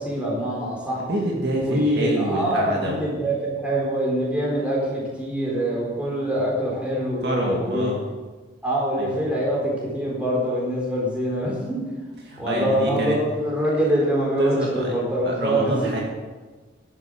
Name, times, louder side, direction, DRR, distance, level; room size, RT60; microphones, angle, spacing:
voice 1, 0.0-1.0 1.5-7.9 8.6-11.9 12.4-15.7, right 1 dB, 5° right, -5 dB, 4.2 m, -24 dB
voice 2, 1.0-3.0 7.2-8.0 9.0-9.1 12.3-13.2 14.4-14.9 15.2-16.0, right 1 dB, 55° right, -1 dB, 2.1 m, -27 dB
11.5 x 8.3 x 7.8 m, 1.3 s
head